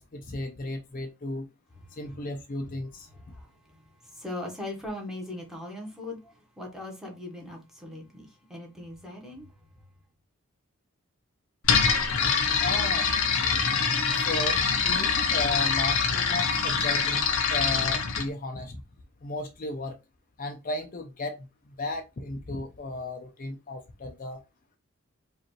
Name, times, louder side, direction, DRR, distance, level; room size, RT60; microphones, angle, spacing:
voice 1, 0.0-1.5 1.9-3.1 12.5-13.8 14.1-17.2 17.5-18.8 19.2-20.0 20.4-21.5 21.8-24.4, left 2 dB, 40° left, 0.5 m, -35 dB
voice 2, 4.2-9.5, left 1 dB, ahead, 1.1 m, -39 dB
sound 1, 11.6-18.3, left 5 dB, 90° left, 0.8 m, -24 dB
4.9 x 2.5 x 3.0 m
head